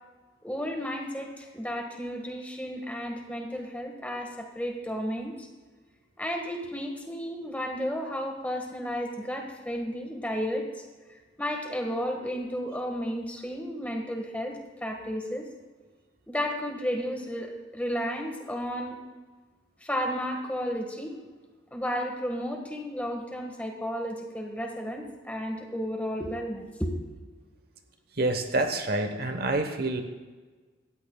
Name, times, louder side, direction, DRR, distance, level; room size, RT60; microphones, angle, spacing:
voice 1, 0.4-5.5 6.2-10.8 11.4-15.5 16.3-19.0 19.8-21.2 21.7-27.0, equal, 10° left, 2 dB, 1.5 m, -33 dB
voice 2, 28.2-30.0, right 2 dB, 50° right, 6 dB, 1.0 m, -27 dB
18.0 x 14.0 x 2.3 m, 1.3 s
head